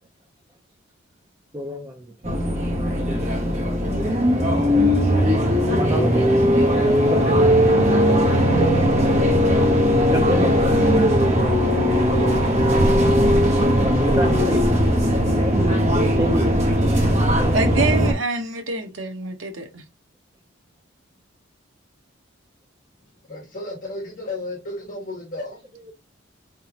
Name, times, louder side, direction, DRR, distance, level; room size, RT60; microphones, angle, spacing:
voice 1, 1.5-2.1 4.7-4.8 5.8-6.2 7.0-7.6 10.1-10.7 13.8-14.7 15.1-17.9, right 1 dB, 15° right, 0.5 m, -28 dB
sound 1, 2.2-18.1, equal, 35° right, 1.0 m, -18 dB
voice 2, 17.5-19.8, right 3 dB, 70° right, 0.8 m, -26 dB
voice 3, 23.3-25.6, left 2 dB, 40° left, 1.6 m, -33 dB
3.8 x 3.5 x 2.9 m
head